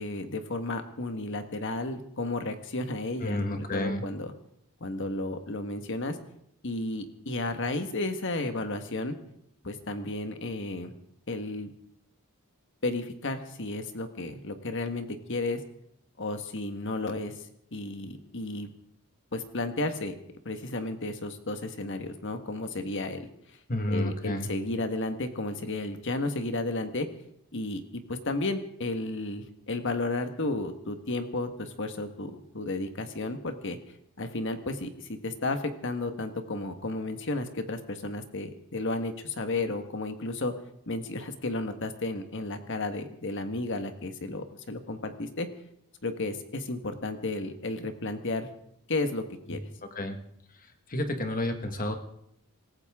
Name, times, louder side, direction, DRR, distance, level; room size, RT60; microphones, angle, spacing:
voice 1, 0.0-4.3 4.8-6.2 6.6-9.1 9.6-10.9 11.3-11.7 12.8-15.6 16.2-17.4 17.7-18.7 19.3-20.1 20.4-23.3 23.9-27.1 27.5-33.8 34.2-40.5 40.9-45.5 46.0-48.5 48.9-49.6, left 2 dB, 55° left, 7 dB, 1.5 m, -33 dB
voice 2, 3.2-4.0 23.7-24.5 49.9-50.2 50.9-52.0, left 1 dB, 40° left, 6 dB, 1.6 m, -30 dB
26.0 x 14.5 x 3.7 m, 0.75 s
head